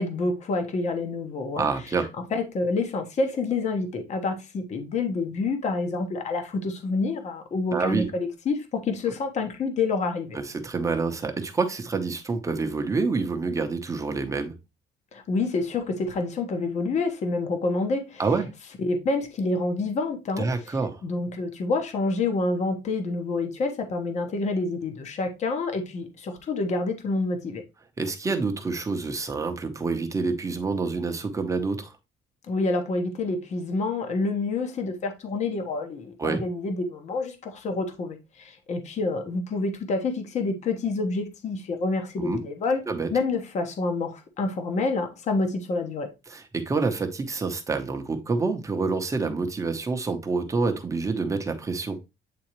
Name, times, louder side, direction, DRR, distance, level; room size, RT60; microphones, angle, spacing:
voice 1, 0.0-1.6 2.3-10.4 15.1-18.2 18.8-20.5 21.0-27.6 32.5-42.8 43.1-46.1, left 3 dB, 40° left, 1.0 m, -28 dB
voice 2, 1.6-2.1 7.7-8.1 10.3-14.5 18.2-18.5 20.4-21.0 28.0-31.9 36.2-36.4 42.2-42.4 42.9-43.1 46.3-52.0, right 4 dB, 15° right, 0.8 m, -27 dB
8.5 x 3.8 x 3.0 m
cardioid pair, 170°, 19 cm